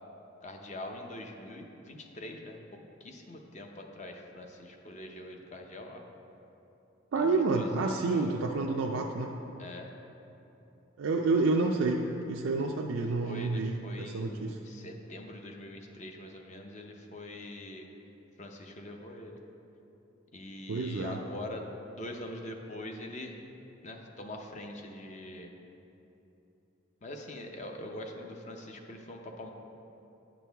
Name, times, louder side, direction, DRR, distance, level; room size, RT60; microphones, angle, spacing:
voice 1, 0.4-2.6 3.0-6.0 7.1-8.2 9.6-9.9 13.2-17.9 18.4-19.4 20.3-23.4 23.8-25.5 27.0-29.5, left 1 dB, 35° left, 3 dB, 0.6 m, -43 dB
voice 2, 7.1-9.3 11.0-14.6 20.7-21.2, right 3 dB, 75° right, 0 dB, 0.4 m, -29 dB
9.9 x 6.1 x 3.4 m, 3.0 s
head